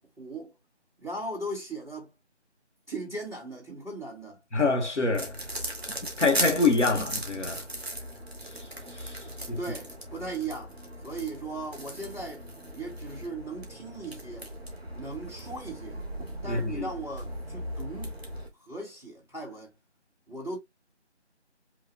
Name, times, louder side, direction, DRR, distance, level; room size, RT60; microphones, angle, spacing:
voice 1, 0.2-0.5 1.0-2.1 2.9-4.4 9.6-10.7 11.0-12.4 12.7-14.5 14.9-16.0 16.4-18.2 18.6-19.7 20.3-20.6, right 2 dB, 15° left, 3.3 m, -38 dB
voice 2, 4.5-5.5 5.9-7.7 8.9-9.2 9.5-9.6 16.4-16.9, left 3 dB, 80° left, 1.5 m, -26 dB
Eating Kinder Bueno, 5.1-18.5, right 1 dB, 10° right, 1.3 m, -38 dB
8.2 x 2.9 x 2.2 m
figure-of-eight pair, 170°, 35 cm